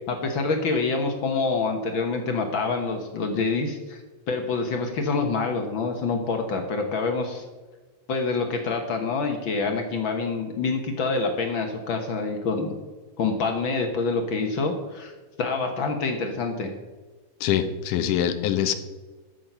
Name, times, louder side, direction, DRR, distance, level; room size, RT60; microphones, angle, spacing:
voice 1, 0.1-4.0 4.3-7.4 8.1-12.7 13.2-15.1 15.4-16.7, left 4 dB, 60° left, 4 dB, 1.4 m, -26 dB
voice 2, 17.4-18.7, left 10 dB, 85° left, 9 dB, 2.4 m, -24 dB
13.0 x 6.5 x 5.5 m, 1.2 s
omnidirectional pair, 3.5 m